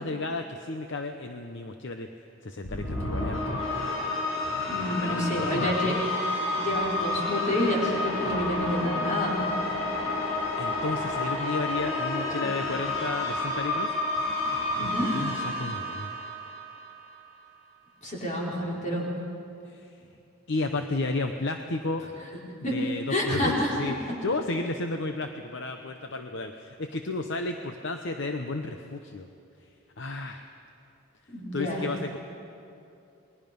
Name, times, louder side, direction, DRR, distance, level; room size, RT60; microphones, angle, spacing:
voice 1, 0.0-2.1 2.4-3.6 4.7-5.9 10.2-14.0 14.8-16.1 19.6-20.0 20.5-22.1 22.7-29.3 29.6-29.7 30.0-30.4 31.5-32.2, left 2 dB, 60° left, 6 dB, 0.9 m, -33 dB
sound 1, 2.6-17.0, left 2 dB, 80° left, 5.8 m, -30 dB
voice 2, 4.7-5.9 6.5-9.4 14.8-15.3 18.0-19.1 22.6-22.8 23.1-23.7 31.3-31.8, left 1 dB, 40° left, -4 dB, 4.9 m, -28 dB
28.5 x 21.0 x 5.4 m, 2.6 s
head